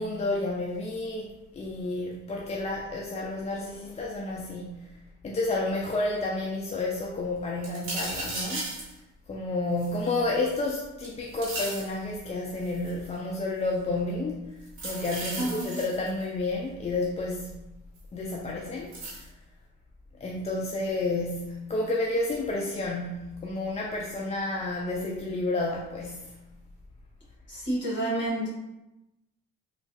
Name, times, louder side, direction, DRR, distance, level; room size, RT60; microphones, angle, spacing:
voice 1, 0.0-5.0 5.2-8.7 9.3-17.6 18.1-19.0 20.2-26.4, left 2 dB, 25° left, -2 dB, 0.3 m, -31 dB
sound 1, 7.6-8.9 9.8-10.7 11.0-11.9 12.6-13.1 14.7-16.2 18.0-18.1 18.9-19.3, right 2 dB, 65° right, 1.1 m, -36 dB
voice 2, 27.5-28.5, right 1 dB, 40° left, -6 dB, 1.5 m, -29 dB
3.1 x 2.3 x 2.6 m, 0.96 s
cardioid pair, 90°, 30 cm